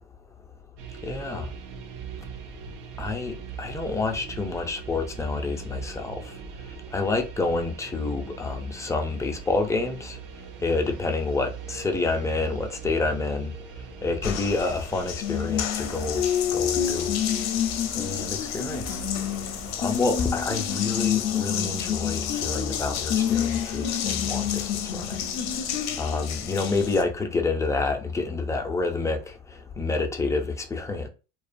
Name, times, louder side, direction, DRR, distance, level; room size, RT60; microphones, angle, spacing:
sound 1, 0.8-20.6, right 7 dB, 70° right, 0.5 m, -42 dB
voice 1, 1.0-1.5 3.0-6.3 6.9-10.2 10.6-13.5 14.0-16.2 16.5-17.1 17.9-19.0 19.8-25.2 26.0-31.1, left 3 dB, 10° left, 0.4 m, -28 dB
Water tap faucet, 14.2-27.0, left 9 dB, 55° left, 0.5 m, -28 dB
2.4 x 2.2 x 2.5 m
supercardioid pair, 100°, 33 cm